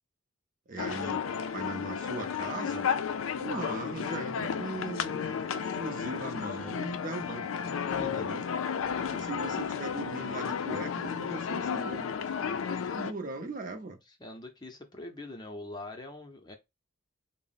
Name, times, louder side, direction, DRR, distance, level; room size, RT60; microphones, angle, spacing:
voice 1, 0.7-2.9 3.4-8.5 9.1-12.6 12.9-14.0, right 3 dB, 40° right, 0.6 m, -40 dB
sound 1, 0.8-13.1, left 7 dB, 80° left, 0.4 m, -33 dB
voice 2, 14.2-16.5, left 2 dB, 20° left, 0.6 m, -43 dB
3.9 x 2.0 x 3.9 m
head